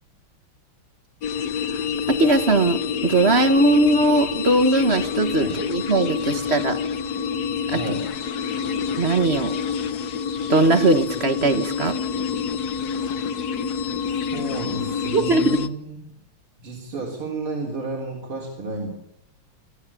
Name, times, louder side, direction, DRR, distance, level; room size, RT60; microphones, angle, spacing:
sound 1, 1.2-15.7, left 6 dB, 55° left, 1.3 m, -27 dB
voice 1, 1.7-6.8 7.7-7.8 9.0-9.5 10.5-12.0 15.1-15.7, right 2 dB, 35° right, 10 dB, 1.3 m, -20 dB
voice 2, 7.7-8.1 13.0-13.2 14.3-16.2 16.6-18.9, right 2 dB, 80° right, -1 dB, 4.4 m, -32 dB
25.0 x 14.5 x 8.5 m, 0.75 s
omnidirectional pair, 2.3 m